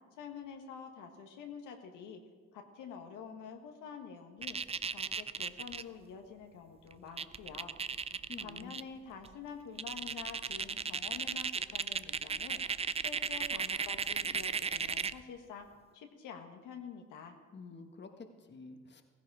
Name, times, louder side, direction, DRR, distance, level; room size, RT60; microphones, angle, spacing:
voice 1, 0.2-2.2 2.5-4.6 4.9-7.7 8.4-15.7 15.9-17.4, left 6 dB, 90° left, 4 dB, 1.6 m, -48 dB
sound 1, 4.4-5.8 6.9-7.0 7.2-8.8 9.2-9.3 9.8-15.2, right 6 dB, 20° right, 0.4 m, -35 dB
voice 2, 8.3-8.7 17.5-19.0, left 4 dB, 35° left, 6 dB, 1.4 m, -49 dB
15.5 x 15.5 x 4.9 m, 1.5 s
cardioid pair, 90°, 30 cm